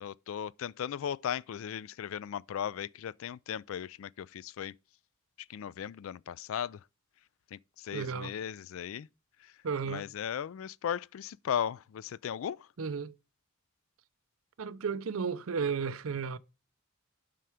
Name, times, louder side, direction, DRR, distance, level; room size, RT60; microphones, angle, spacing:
voice 1, 0.0-4.7 5.5-6.8 7.5-9.1 9.4-9.5 9.8-12.7, left 9 dB, 75° left, 0.3 m, -37 dB
voice 2, 7.9-8.3 9.6-10.1 12.8-13.1 14.6-16.4, right 6 dB, 80° right, 0.6 m, -33 dB
7.6 x 5.7 x 4.9 m
head